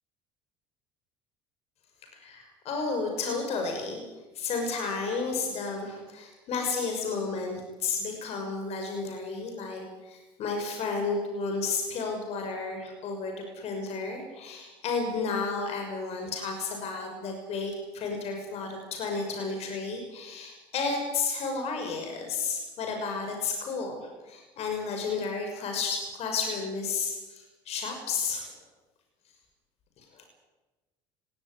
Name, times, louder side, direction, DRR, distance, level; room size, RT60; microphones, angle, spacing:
voice 1, 2.1-4.0 4.3-28.5 30.0-30.2, left 4 dB, 55° left, 3 dB, 6.0 m, -32 dB
18.0 x 17.5 x 10.0 m, 1.2 s
hypercardioid pair, 75°, 13 cm